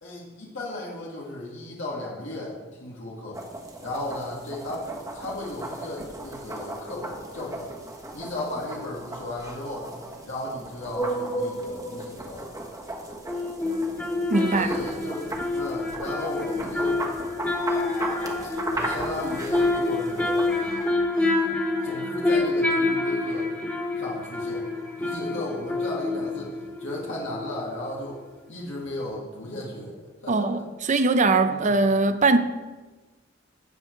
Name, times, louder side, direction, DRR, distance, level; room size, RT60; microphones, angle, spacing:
voice 1, 0.0-3.4 3.8-7.7 8.1-9.9 10.2-12.5 14.5-15.2 15.5-17.0 18.7-20.5 21.8-23.5 24.0-24.7 25.0-26.5 26.8-28.2 28.5-30.0 30.2-30.7 31.5-31.8, left 1 dB, 80° left, 2.1 m, -35 dB
sound 1, 3.3-20.9, right 1 dB, 15° right, 1.3 m, -37 dB
sound 2, 11.0-12.2 13.3-27.8 28.1-28.2, left 2 dB, 10° left, 1.8 m, -27 dB
voice 2, 14.3-14.7 30.3-32.4, right 3 dB, 40° right, 0.6 m, -21 dB
Speech, 16.4-16.5 17.5-22.4 23.2-23.4 24.4-25.0, left 3 dB, 45° left, 2.3 m, -44 dB
13.0 x 8.4 x 3.2 m
head